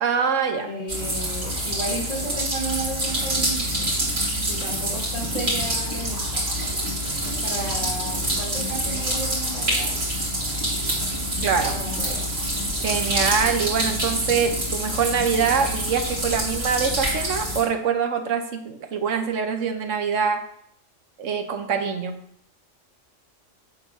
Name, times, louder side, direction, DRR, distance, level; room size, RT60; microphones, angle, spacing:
voice 1, 0.0-0.7 11.4-11.7 12.8-20.4 21.2-22.1, right 6 dB, 75° right, 6 dB, 1.2 m, -24 dB
voice 2, 0.6-3.9 4.5-6.4 7.2-9.9 11.5-12.2, right 1 dB, 30° left, -8 dB, 1.7 m, -33 dB
sound 1, 0.9-17.6, right 1 dB, 50° right, 2.8 m, -26 dB
8.0 x 3.7 x 6.2 m, 0.69 s
omnidirectional pair, 1.3 m